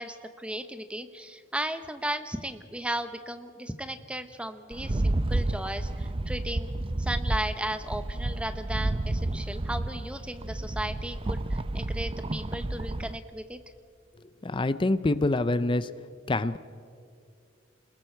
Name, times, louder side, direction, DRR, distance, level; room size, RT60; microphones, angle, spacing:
voice 1, 0.0-6.7 7.0-13.6, right 1 dB, 5° right, 9 dB, 0.9 m, -35 dB
Rattle, 4.7-13.2, right 1 dB, 30° right, 0.6 m, -31 dB
voice 2, 14.4-15.9 16.3-16.6, left 2 dB, 25° left, 14 dB, 0.5 m, -25 dB
28.5 x 21.0 x 4.5 m, 2.4 s
head